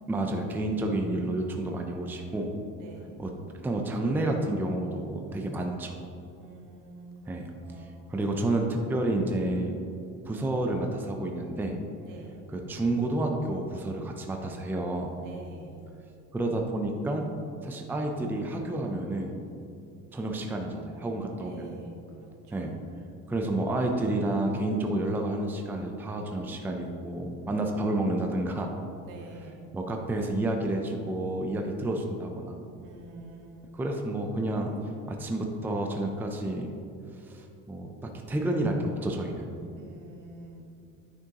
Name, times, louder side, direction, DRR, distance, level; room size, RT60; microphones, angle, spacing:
voice 1, 0.1-2.5 3.2-5.9 7.3-7.5 7.8-9.8 10.3-11.8 12.5-15.1 16.3-17.3 17.6-19.4 20.1-21.7 22.5-22.7 23.3-28.7 29.7-32.6 33.7-34.7 35.1-36.7 37.2-39.5, right 1 dB, 5° right, 2 dB, 0.4 m, -30 dB
voice 2, 2.8-3.3 6.4-8.1 12.0-12.5 15.2-15.9 21.4-22.7 29.0-29.7 32.8-33.7 39.7-40.7, right 3 dB, 75° right, 0 dB, 1.4 m, -48 dB
9.3 x 6.1 x 2.9 m, 2.7 s
cardioid pair, 145°, 31 cm